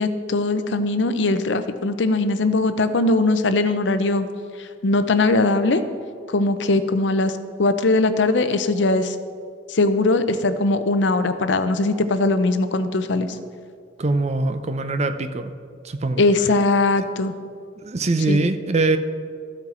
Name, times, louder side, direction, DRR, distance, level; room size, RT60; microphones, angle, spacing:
voice 1, 0.0-4.3 4.6-5.8 6.3-7.3 7.6-9.2 9.7-13.4 16.2-17.3 18.3-18.4, left 2 dB, 75° left, 10 dB, 0.6 m, -20 dB
voice 2, 14.0-15.5 15.8-16.2 17.8-19.0, right 2 dB, 40° right, 9 dB, 0.5 m, -22 dB
14.0 x 6.0 x 4.4 m, 2.2 s
head